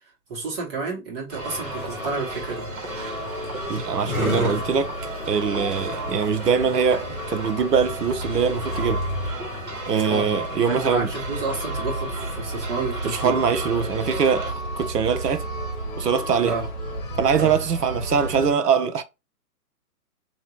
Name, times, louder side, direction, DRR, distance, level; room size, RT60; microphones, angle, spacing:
voice 1, 0.3-2.7 10.1-10.3 10.7-13.3 16.5-16.7 17.4-17.5, right 3 dB, 35° right, 2.1 m, -30 dB
sound 1, 1.3-18.5, equal, 30° left, 1.2 m, -33 dB
sound 2, 1.3-14.5, right 2 dB, 55° right, 1.9 m, -35 dB
sound 3, 1.5-7.5, left 1 dB, 10° right, 2.0 m, -33 dB
voice 2, 3.7-5.0 5.3-9.0 9.9-11.1 13.0-15.4 16.0-16.6 17.2-19.0, right 6 dB, 80° right, 0.9 m, -23 dB
3.3 x 3.0 x 3.0 m
hypercardioid pair, 140°, 47 cm